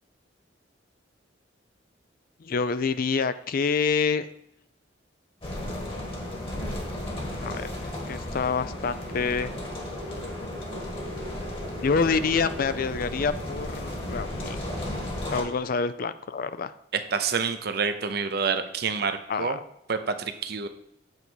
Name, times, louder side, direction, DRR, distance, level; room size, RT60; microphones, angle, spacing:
voice 1, 2.4-4.3 7.4-9.5 11.8-14.6 15.3-16.7 19.3-19.6, left 5 dB, 50° left, 13 dB, 0.4 m, -27 dB
sound 1, 5.4-15.4, left 1 dB, 30° left, 1.5 m, -34 dB
voice 2, 16.9-19.6 19.9-20.7, right 5 dB, 55° right, 9 dB, 0.7 m, -28 dB
8.1 x 4.1 x 6.2 m, 0.76 s
head